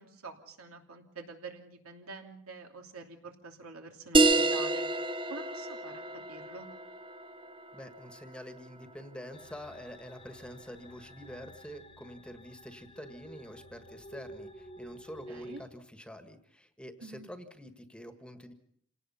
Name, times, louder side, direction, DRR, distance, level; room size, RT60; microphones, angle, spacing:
voice 1, 0.0-6.0 6.3-6.7 15.3-15.6 17.0-17.3, right 3 dB, 90° right, 3 dB, 2.9 m, -47 dB
sound 1, 4.1-9.2, right 2 dB, 25° right, 0.8 m, -29 dB
voice 2, 7.7-18.5, equal, 5° left, 8 dB, 1.5 m, -47 dB
sound 2, 9.3-15.7, right 1 dB, 25° left, 1.3 m, -50 dB
27.5 x 18.0 x 5.7 m, 0.66 s
head